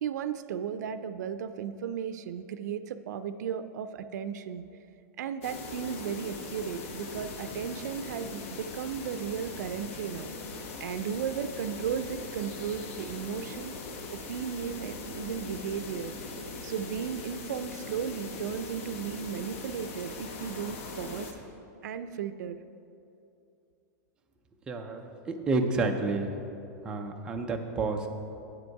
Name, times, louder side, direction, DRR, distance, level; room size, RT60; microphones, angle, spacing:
voice 1, 0.0-4.6 5.2-10.3 10.8-13.7 14.1-16.3 16.6-21.3 21.8-22.6, right 8 dB, 90° right, 11 dB, 0.4 m, -35 dB
sound 1, 5.4-21.3, left 3 dB, 50° left, 0.9 m, -41 dB
voice 2, 24.7-26.3 26.8-28.1, right 3 dB, 10° right, 3 dB, 0.4 m, -30 dB
8.6 x 7.8 x 4.6 m, 2.7 s
supercardioid pair, 180°, 9 cm